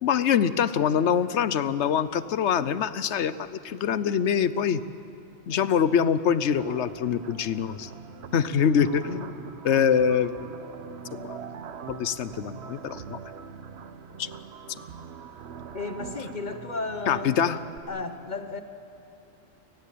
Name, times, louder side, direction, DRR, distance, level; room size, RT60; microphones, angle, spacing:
voice 1, 0.0-4.8 5.5-7.9 8.3-9.3 9.6-10.3 11.1-11.4 11.9-13.2 14.2-14.3 17.1-17.6, left 7 dB, 80° left, 15 dB, 1.1 m, -24 dB
sound 1, 6.5-17.8, right 7 dB, 75° right, 1.1 m, -43 dB
voice 2, 15.7-17.3 17.9-18.6, left 3 dB, 45° left, 8 dB, 1.2 m, -33 dB
29.5 x 18.0 x 8.5 m, 2.8 s
omnidirectional pair, 1.1 m